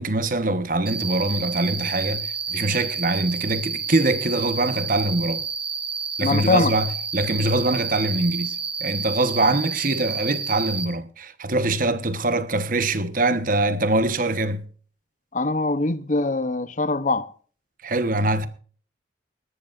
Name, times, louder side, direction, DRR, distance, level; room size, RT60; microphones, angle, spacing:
voice 1, 0.0-5.4 6.2-14.6 17.8-18.5, right 2 dB, 50° right, 1.1 m, -23 dB
Cricket, 0.9-10.9, right 5 dB, 35° right, 1.8 m, -30 dB
voice 2, 6.2-6.7 15.3-17.3, left 2 dB, 45° left, 0.8 m, -23 dB
20.0 x 13.0 x 2.5 m
head